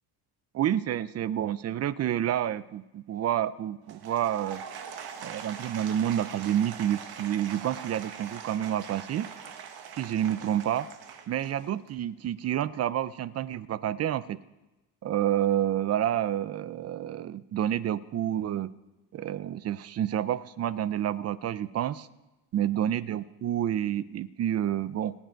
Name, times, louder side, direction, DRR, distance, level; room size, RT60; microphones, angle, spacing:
voice 1, 0.5-4.6 5.2-9.3 10.0-10.9 11.3-14.4 15.0-18.7 19.1-22.1 22.5-25.1, right 11 dB, 40° right, 17 dB, 0.4 m, -29 dB
Applause / Crowd, 3.8-12.0, right 7 dB, 60° right, 1.5 m, -42 dB
25.0 x 9.3 x 4.6 m, 1.0 s
cardioid pair, 150°, 43 cm